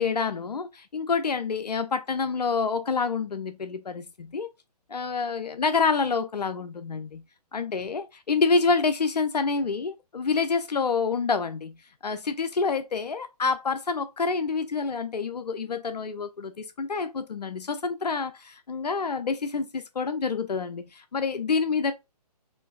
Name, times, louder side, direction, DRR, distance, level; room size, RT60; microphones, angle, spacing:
voice 1, 0.0-4.5 4.9-7.2 7.5-11.8 12.0-21.9, left 4 dB, 75° left, 0.5 m, -27 dB
4.5 x 2.6 x 2.2 m
figure-of-eight pair, 130°, 21 cm